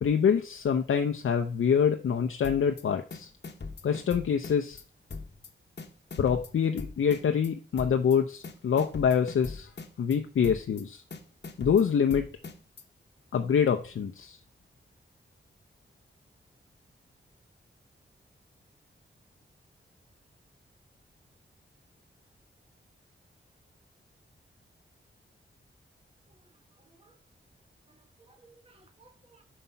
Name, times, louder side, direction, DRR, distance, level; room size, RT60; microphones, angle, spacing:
voice 1, 0.0-3.3 3.8-4.8 6.2-9.7 10.0-11.0 11.6-12.3 13.3-14.4, left 7 dB, 75° left, 5 dB, 0.6 m, -26 dB
sound 1, 2.4-2.8 3.1-4.8 5.1-5.5 5.8-7.5 7.8-8.2 8.4-10.2 10.4-10.8 11.1-12.8, left 4 dB, 55° left, 1.0 m, -41 dB
voice 2, 26.3-27.2 27.9-29.4, right 3 dB, 30° right, 5 dB, 1.4 m, -61 dB
5.5 x 5.5 x 5.6 m, 0.39 s
cardioid pair, 55°, 21 cm